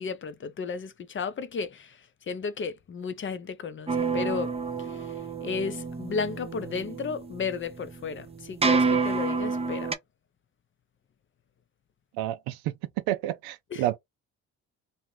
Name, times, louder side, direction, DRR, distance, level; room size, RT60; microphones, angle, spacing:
voice 1, 0.0-4.5 4.8-9.9 13.7-13.8, left 5 dB, 35° left, 0.5 m, -34 dB
sound 1, 3.9-9.9, right 4 dB, 15° right, 0.5 m, -29 dB
voice 2, 12.2-12.7 13.1-14.0, right 13 dB, 85° right, 0.5 m, -29 dB
2.7 x 2.0 x 3.1 m
supercardioid pair, 60°, 35 cm